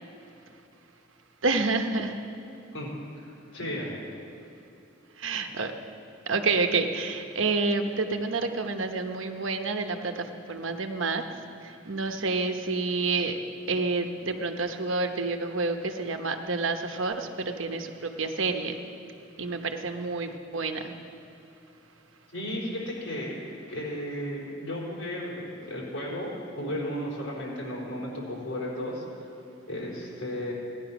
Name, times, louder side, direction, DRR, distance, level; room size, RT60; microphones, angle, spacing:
voice 1, 1.4-2.2 5.2-5.7 6.3-11.2 11.6-13.4 13.7-18.9 19.4-20.9, right 3 dB, 80° right, 6 dB, 1.0 m, -29 dB
voice 2, 2.7-4.0 22.3-23.3 23.7-29.0 29.7-30.5, equal, 90° left, -4 dB, 4.0 m, -34 dB
16.5 x 10.5 x 6.0 m, 2.8 s
head